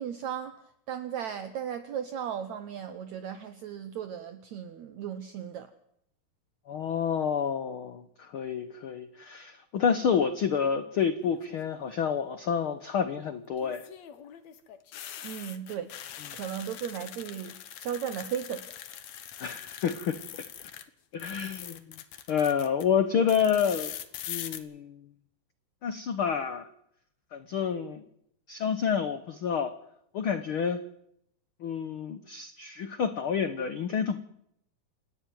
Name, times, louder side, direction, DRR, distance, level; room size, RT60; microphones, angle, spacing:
voice 1, 0.0-5.7 15.2-15.9 16.3-18.6, right 9 dB, 65° right, 10 dB, 2.0 m, -36 dB
voice 2, 6.7-13.9 19.4-20.4 21.1-21.8 22.3-24.0 24.3-25.0 25.8-26.7 27.3-28.0 28.5-29.7 30.1-30.8 31.6-34.2, left 7 dB, 80° left, 10 dB, 1.2 m, -29 dB
sound 1, 11.2-11.7 13.6-20.8 21.1-22.8 23.3-24.6, left 10 dB, 60° left, 2.2 m, -42 dB
28.0 x 12.0 x 9.3 m, 0.74 s
omnidirectional pair, 4.0 m